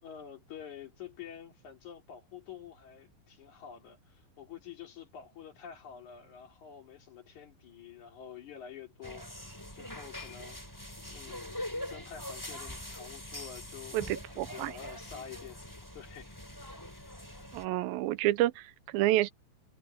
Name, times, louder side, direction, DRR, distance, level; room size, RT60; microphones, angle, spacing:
voice 1, 0.0-10.8 11.1-14.0 14.3-15.7 15.9-16.4 16.9-17.2, left 8 dB, 55° left, 4.0 m, -48 dB
sound 1, 9.0-17.6, left 1 dB, 5° left, 3.9 m, -43 dB
voice 2, 13.9-14.7 17.5-19.3, right 15 dB, 80° right, 2.5 m, -29 dB
omnidirectional pair, 4.3 m